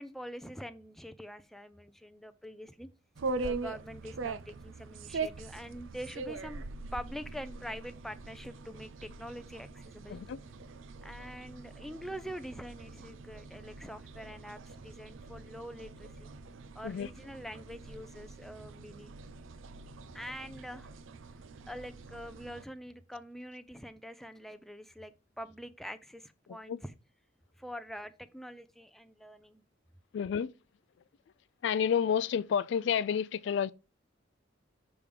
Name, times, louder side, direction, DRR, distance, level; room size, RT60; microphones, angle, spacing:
voice 1, 0.0-2.9 3.4-6.6 6.9-10.2 11.0-16.3 16.7-19.1 20.1-20.9 21.7-26.9 27.6-29.6, equal, ahead, 0.4 m, -45 dB
sound 1, 3.1-22.6, right 3 dB, 85° right, 0.5 m, -42 dB
voice 2, 30.1-30.5 31.6-33.7, left 7 dB, 65° left, 0.3 m, -30 dB
6.5 x 3.5 x 5.1 m
head